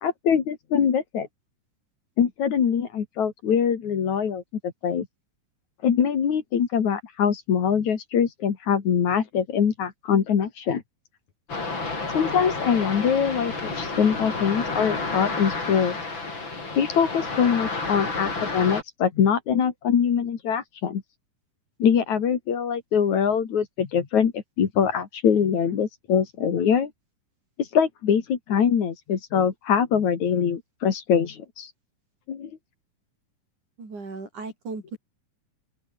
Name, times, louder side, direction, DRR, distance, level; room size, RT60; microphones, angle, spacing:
voice 1, 0.0-1.3 2.2-5.1 5.8-10.8 12.1-16.0 16.8-21.0 21.8-26.9 27.6-31.7 32.3-32.5, left 7 dB, 60° left, 3.6 m, -23 dB
sound 1, 11.5-18.8, left 3 dB, 35° left, 5.6 m, -30 dB
voice 2, 33.8-35.0, right 3 dB, 65° right, 8.5 m, -36 dB
open air
omnidirectional pair, 3.7 m